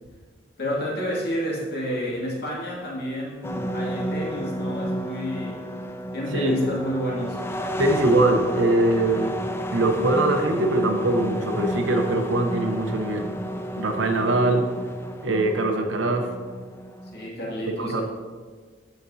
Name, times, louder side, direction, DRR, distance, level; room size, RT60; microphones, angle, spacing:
voice 1, 0.6-5.8 6.1-7.4 17.1-18.0, equal, 55° left, -5 dB, 2.3 m, -29 dB
sound 1, 3.4-17.3, equal, 15° left, 0.3 m, -31 dB
voice 2, 6.3-6.7 7.8-9.4 9.7-13.3 13.8-14.7 15.2-16.3 17.8-18.0, right 2 dB, 80° right, 4 dB, 0.9 m, -22 dB
13.0 x 5.2 x 2.7 m, 1.5 s
head